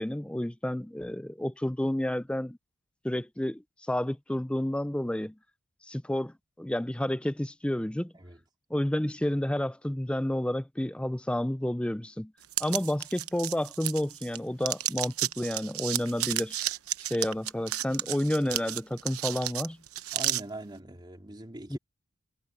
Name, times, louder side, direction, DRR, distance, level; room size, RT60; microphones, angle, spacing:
voice 1, 0.0-2.6 3.0-3.6 3.9-5.4 5.9-8.1 8.7-12.3 12.6-16.6 17.1-19.8 21.7-21.8, left 1 dB, 5° left, 0.4 m, -30 dB
sound 1, 12.5-14.4 14.6-20.4, right 14 dB, 85° right, 0.9 m, -32 dB
voice 2, 20.1-21.8, right 1 dB, 20° right, 2.7 m, -42 dB
head